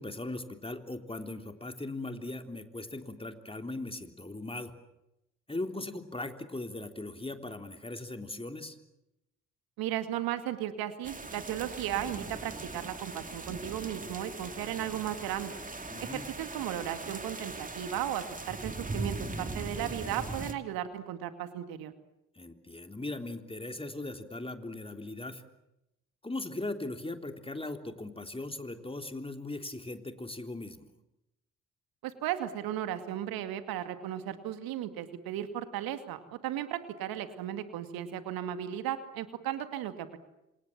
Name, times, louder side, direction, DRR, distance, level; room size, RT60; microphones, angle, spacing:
voice 1, 0.0-4.7 5.5-8.8 15.9-16.3 22.4-25.4 26.2-30.9, left 2 dB, 15° left, 6 dB, 3.6 m, -39 dB
voice 2, 9.8-15.5 16.0-21.9 32.0-40.2, right 11 dB, 70° right, 9 dB, 2.3 m, -35 dB
sound 1, 11.0-20.5, right 3 dB, 20° right, 2.8 m, -40 dB
27.5 x 27.5 x 7.5 m, 0.89 s
hypercardioid pair, 50°, 37 cm